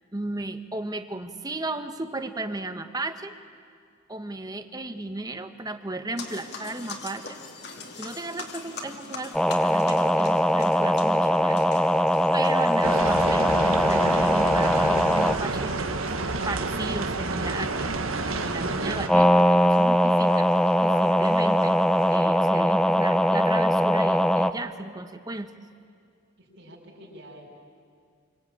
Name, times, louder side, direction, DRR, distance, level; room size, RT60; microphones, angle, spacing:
voice 1, 0.1-3.3 4.1-7.4 8.0-12.0 12.3-15.7 16.4-17.9 18.3-21.8 22.1-25.5, right 2 dB, 20° right, 9 dB, 1.1 m, -34 dB
sound 1, 6.2-22.2, left 3 dB, 50° left, 2.4 m, -43 dB
sound 2, 9.3-15.4 19.1-24.5, equal, 5° left, 0.6 m, -21 dB
sound 3, 12.8-19.1, right 3 dB, 80° right, 1.6 m, -29 dB
voice 2, 26.4-27.4, equal, 55° right, -1 dB, 5.1 m, -47 dB
28.0 x 23.5 x 8.7 m, 2.3 s
head